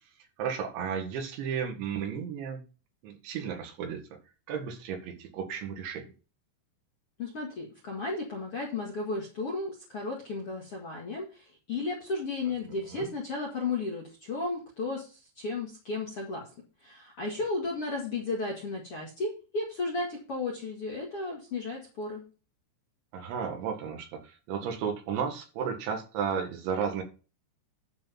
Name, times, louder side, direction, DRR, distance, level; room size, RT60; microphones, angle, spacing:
voice 1, 0.4-2.6 3.0-4.2 4.5-6.1 12.9-13.1 23.1-27.0, right 7 dB, 75° right, 4 dB, 4.0 m, -33 dB
voice 2, 7.2-16.5 16.8-22.2, left 3 dB, 50° left, -2 dB, 1.8 m, -34 dB
11.5 x 4.9 x 5.7 m, 0.34 s
omnidirectional pair, 5.4 m